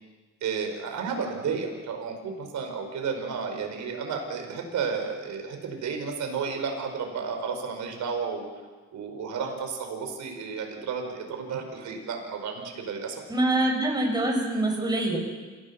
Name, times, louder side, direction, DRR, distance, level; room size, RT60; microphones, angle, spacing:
voice 1, 0.4-8.5 8.9-13.2, right 5 dB, 70° right, 3 dB, 5.2 m, -32 dB
voice 2, 13.3-15.2, right 1 dB, 15° right, 0 dB, 6.8 m, -25 dB
27.0 x 17.0 x 6.9 m, 1.4 s
cardioid pair, 90°, 30 cm